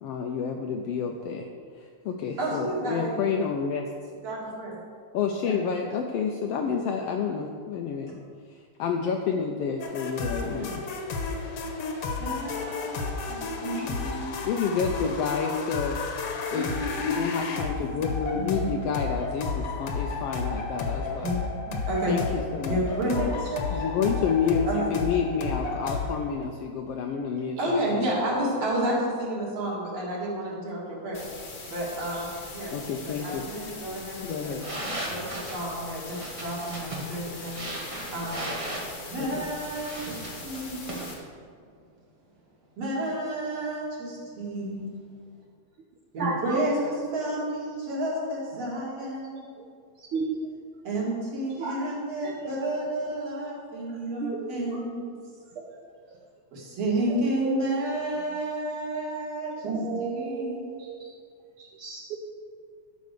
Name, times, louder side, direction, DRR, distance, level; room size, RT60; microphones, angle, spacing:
voice 1, 0.0-1.5 1.7-3.9 5.1-8.1 8.5-10.8 14.4-21.3 22.1-22.8 23.7-28.1 32.7-33.4 34.2-34.6 39.2-39.5, left 6 dB, 80° left, 3 dB, 1.4 m, -29 dB
voice 2, 2.4-3.2 4.2-4.8 5.4-5.6 10.4-10.8 12.2-14.3 16.5-17.5 18.3-18.7 21.1-21.4 21.7-22.2 22.7-24.1 24.7-24.9 27.6-31.2 31.7-32.7 33.0-34.6 35.1-37.6 38.1-38.5 39.1-41.1 42.8-45.0 46.1-49.6 50.8-55.1 56.5-59.7 60.0-61.1, right 1 dB, 60° right, -5 dB, 3.3 m, -31 dB
sound 1, 9.8-26.3, left 4 dB, 65° left, 1.8 m, -32 dB
sound 2, 31.1-41.1, left 3 dB, 45° left, 1.2 m, -42 dB
sound 3, 34.6-41.1, right 1 dB, 35° right, 0.5 m, -37 dB
voice 3, 46.2-46.6 50.0-50.4 51.6-51.9 52.2-52.6 53.9-54.9 55.5-55.8 57.4-57.6 59.6-61.1 61.6-62.2, right 4 dB, 75° right, 0 dB, 1.2 m, -33 dB
12.0 x 5.1 x 6.7 m, 2.1 s
omnidirectional pair, 3.3 m